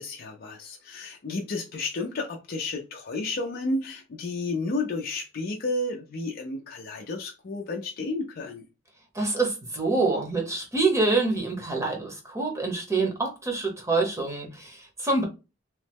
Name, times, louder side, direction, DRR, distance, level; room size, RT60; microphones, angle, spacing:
voice 1, 0.0-8.6, left 2 dB, 50° left, 0.4 m, -32 dB
voice 2, 9.1-15.2, right 3 dB, 15° right, 0.8 m, -26 dB
3.0 x 2.0 x 3.3 m
head